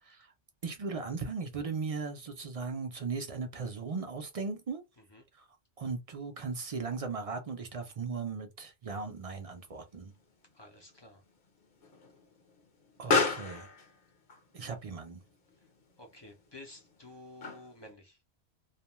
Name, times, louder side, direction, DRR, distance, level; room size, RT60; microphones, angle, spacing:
voice 1, 0.0-0.3 0.6-4.8 5.3-5.5 5.8-10.1 13.0-13.7 14.5-15.2, right 4 dB, 50° right, 0.4 m, -37 dB
Explosion, 8.9-17.9, left 4 dB, 55° left, 0.9 m, -37 dB
voice 2, 10.5-11.2 13.0-13.3 16.0-18.2, left 2 dB, 35° left, 0.5 m, -51 dB
2.4 x 2.2 x 2.9 m
omnidirectional pair, 1.2 m